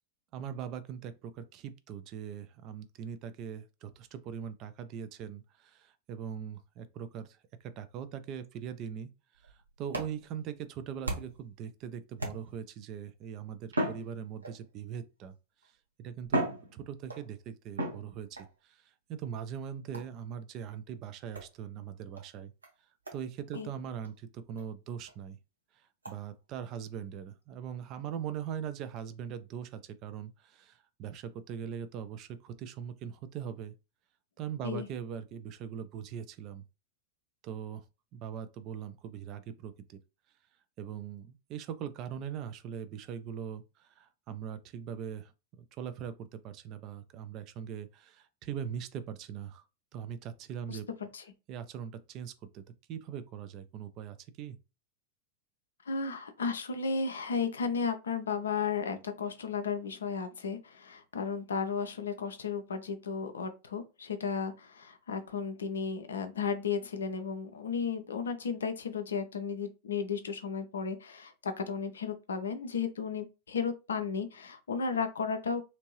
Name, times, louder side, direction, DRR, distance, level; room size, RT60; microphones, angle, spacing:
voice 1, 0.3-9.1 9.3-15.3 16.0-16.4 16.7-22.5 23.1-25.4 25.7-33.8 34.4-36.6 37.4-37.8 38.1-40.0 40.8-49.6 49.9-50.9 51.5-52.6 52.9-54.6, right 8 dB, 35° right, 0.4 m, -41 dB
sound 1, 9.3-11.5 12.2-12.8 13.7-14.8 15.6-15.7 16.2-17.3 17.8-18.5 19.9-20.2 21.3-21.5 22.2-22.3 22.6-22.7 23.1-23.2 23.5-23.6 24.0-24.1 24.6-24.7 25.1-25.2 26.0-26.2, right 1 dB, 75° right, 0.8 m, -36 dB
voice 2, 55.9-75.6, left 5 dB, 70° left, 0.5 m, -34 dB
2.9 x 2.6 x 2.9 m
figure-of-eight pair, 90°, 0 cm